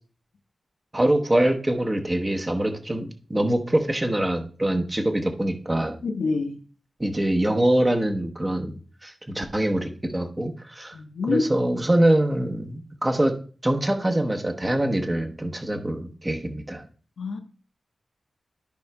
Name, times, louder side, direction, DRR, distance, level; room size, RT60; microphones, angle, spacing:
voice 1, 0.9-6.0 7.0-11.0 11.3-13.3 13.6-16.8, right 1 dB, 15° right, 1.0 m, -24 dB
voice 2, 6.0-6.6 10.9-11.4 17.2-17.4, left 4 dB, 85° left, 1.0 m, -26 dB
13.5 x 5.4 x 2.3 m
wide cardioid pair, 140°, 0 cm